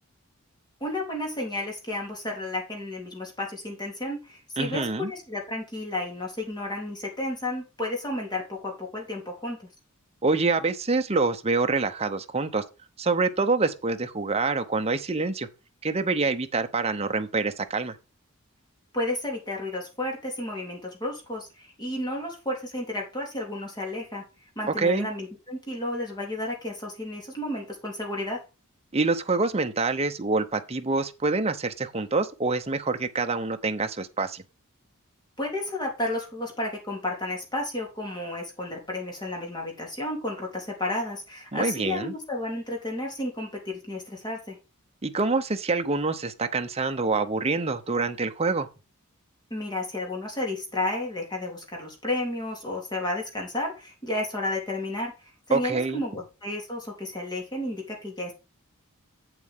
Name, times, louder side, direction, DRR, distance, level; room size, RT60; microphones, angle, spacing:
voice 1, 0.8-9.7 18.9-24.2 24.5-28.4 35.4-44.6 49.5-55.1 55.5-58.3, left 1 dB, 20° left, 3.4 m, -32 dB
voice 2, 4.6-5.1 10.2-12.6 13.0-15.5 15.8-18.0 24.8-25.1 28.9-34.4 41.5-42.1 45.0-48.7 55.5-56.0, right 3 dB, 30° right, 0.9 m, -26 dB
7.7 x 7.6 x 3.7 m
head